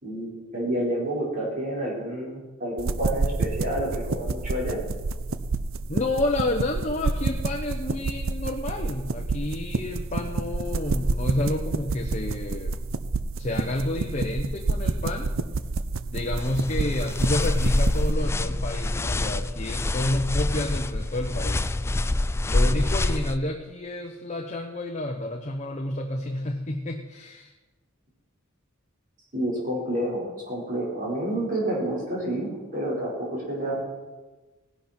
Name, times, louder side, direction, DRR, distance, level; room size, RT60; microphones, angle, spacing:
voice 1, 0.0-4.8 29.3-33.8, right 1 dB, 40° right, -5 dB, 4.7 m, -29 dB
sound 1, 2.8-18.1, right 3 dB, 80° right, 0.6 m, -29 dB
voice 2, 5.9-12.8 13.4-15.3 16.1-21.7 22.5-27.5, left 1 dB, 35° left, 2 dB, 1.0 m, -30 dB
sound 2, 16.4-23.4, left 2 dB, 15° left, 0.3 m, -25 dB
17.5 x 11.5 x 4.4 m, 1.2 s
head